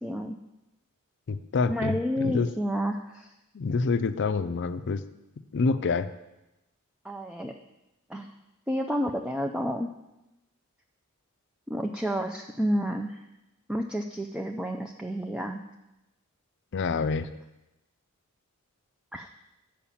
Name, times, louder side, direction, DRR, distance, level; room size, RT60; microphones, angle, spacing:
voice 1, 0.0-0.4 1.7-3.3 7.0-7.6 8.1-8.3 8.7-9.9 11.7-13.2 13.7-15.6 19.1-19.3, equal, 5° right, 2 dB, 0.4 m, -30 dB
voice 2, 1.3-2.5 3.5-5.0 5.5-6.1 16.7-17.3, left 4 dB, 55° left, 12 dB, 0.5 m, -27 dB
8.7 x 5.0 x 7.1 m, 0.94 s
head